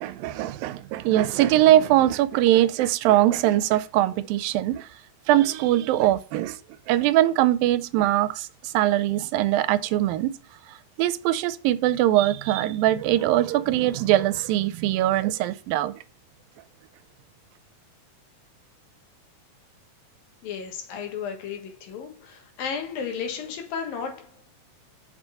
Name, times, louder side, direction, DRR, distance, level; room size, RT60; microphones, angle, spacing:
voice 1, 0.0-4.9 5.3-6.6 6.9-10.3 11.0-15.9, right 14 dB, 85° right, 2.4 m, -22 dB
voice 2, 20.4-24.3, left 6 dB, 80° left, 3.2 m, -33 dB
6.2 x 5.9 x 5.5 m
omnidirectional pair, 4.0 m